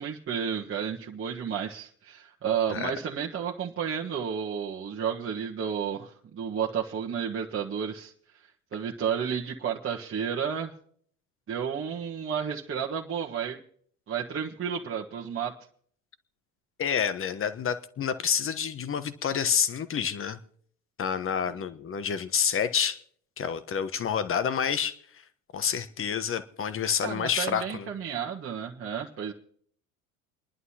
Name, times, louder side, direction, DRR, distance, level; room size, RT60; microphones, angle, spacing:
voice 1, 0.0-8.1 8.7-10.7 11.5-13.6 14.1-15.5 27.0-29.3, right 7 dB, 35° right, -3 dB, 1.5 m, -32 dB
voice 2, 16.8-20.4 21.0-23.0 23.4-25.0 25.5-27.9, left 7 dB, 35° left, 12 dB, 1.1 m, -28 dB
29.0 x 11.0 x 2.9 m, 0.62 s
hypercardioid pair, 65°, 39 cm